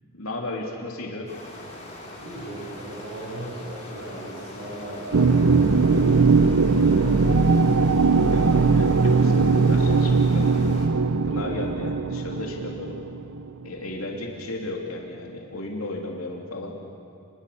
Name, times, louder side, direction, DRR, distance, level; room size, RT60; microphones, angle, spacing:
voice 1, 0.1-1.3 8.3-10.5 11.2-13.0 13.6-16.7, left 2 dB, 80° left, -1 dB, 3.2 m, -34 dB
sound 1, 1.3-10.9, left 1 dB, 35° left, 5.9 m, -41 dB
voice 2, 2.2-7.9, right 1 dB, 65° right, -7 dB, 8.0 m, -37 dB
sound 2, 5.1-13.6, right 4 dB, 90° right, 0.7 m, -20 dB
30.0 x 22.5 x 7.1 m, 2.6 s
head